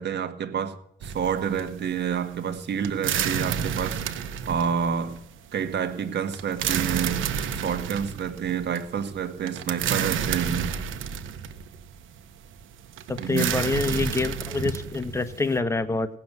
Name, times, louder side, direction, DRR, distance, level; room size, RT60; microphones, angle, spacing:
voice 1, 0.0-4.2 4.5-5.2 5.5-10.7 13.2-13.5, right 7 dB, 60° right, 1.7 m, -29 dB
sound 1, 1.0-15.6, right 8 dB, 80° right, 1.3 m, -30 dB
voice 2, 13.1-16.1, left 3 dB, 15° left, 1.3 m, -26 dB
17.0 x 7.1 x 9.6 m
cardioid pair, 90°, 20 cm